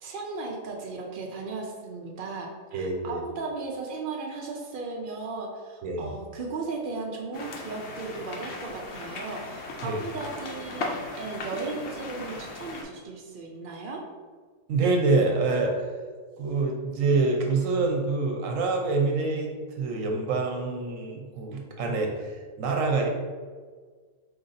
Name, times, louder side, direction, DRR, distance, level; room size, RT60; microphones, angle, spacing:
voice 1, 0.0-14.0, right 3 dB, 85° right, 1 dB, 0.4 m, -36 dB
voice 2, 2.7-3.2 5.8-6.1 9.8-10.0 14.7-15.9 16.4-19.5 19.8-23.1, right 3 dB, 70° right, 1 dB, 0.9 m, -26 dB
sound 1, 7.3-12.8, left 3 dB, 60° left, 0.7 m, -37 dB
4.8 x 2.6 x 3.9 m, 1.6 s
omnidirectional pair, 1.6 m